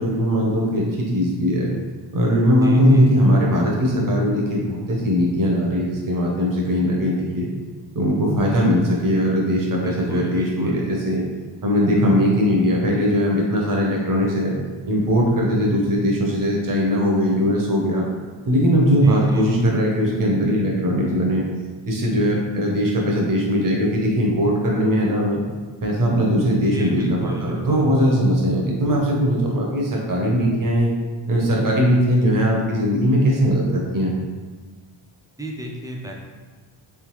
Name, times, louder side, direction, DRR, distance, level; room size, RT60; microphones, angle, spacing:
voice 1, 0.0-1.7 2.1-7.5 7.9-11.2 11.6-14.5 14.9-18.0 18.4-21.4 21.9-25.4 25.8-30.9 31.3-34.1, equal, 45° right, -2 dB, 0.9 m, -20 dB
voice 2, 2.6-3.1 9.8-10.9 19.0-19.5 26.7-27.9 35.4-36.1, right 1 dB, 10° right, -1 dB, 0.3 m, -33 dB
3.6 x 3.3 x 3.1 m, 1.4 s
wide cardioid pair, 150°, 47 cm